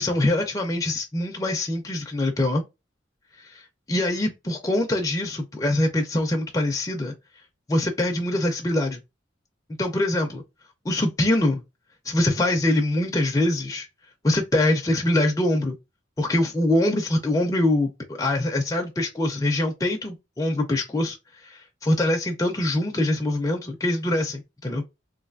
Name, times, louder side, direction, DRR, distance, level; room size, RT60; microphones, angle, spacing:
voice 1, 0.0-2.6 3.4-7.1 7.7-9.0 9.8-10.4 10.8-11.6 12.0-13.9 14.2-15.8 16.2-21.2 21.4-24.8, left 1 dB, 20° left, 0.4 m, -24 dB
3.2 x 2.5 x 2.5 m
head